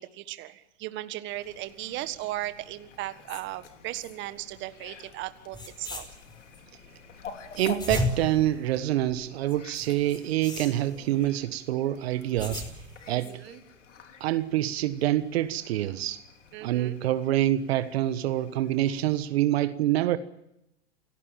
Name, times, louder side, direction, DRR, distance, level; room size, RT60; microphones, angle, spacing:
voice 1, 0.0-6.1 13.1-13.6 16.5-17.0, right 16 dB, 30° right, 12 dB, 1.6 m, -37 dB
Fowl, 1.3-19.3, left 6 dB, 85° left, 3.7 m, -49 dB
sound 1, 5.2-5.3 5.5-6.6 7.5-9.2 9.7-11.3 12.1-13.1, left 1 dB, 10° left, 5.0 m, -35 dB
voice 2, 7.6-12.6 13.1-13.3 14.2-16.2 16.6-20.2, right 13 dB, 60° right, 13 dB, 1.4 m, -26 dB
29.0 x 17.5 x 7.5 m, 0.84 s
hypercardioid pair, 130°, 35 cm